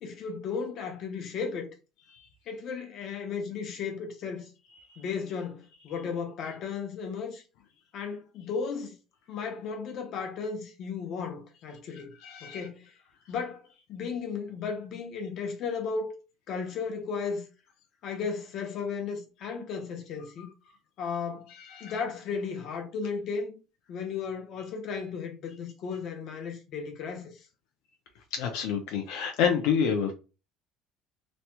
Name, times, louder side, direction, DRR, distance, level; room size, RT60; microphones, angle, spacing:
voice 1, 0.0-1.7 2.5-4.5 5.0-7.4 7.9-8.9 9.3-12.1 12.4-12.9 13.3-16.1 16.5-17.4 18.0-20.5 21.0-21.5 21.8-23.6 23.9-27.3, left 5 dB, 45° left, 0.8 m, -35 dB
voice 2, 12.2-12.6 21.6-21.9 28.3-30.1, left 7 dB, 75° left, 0.6 m, -28 dB
3.1 x 2.9 x 2.2 m
cardioid pair, 165°, 0 cm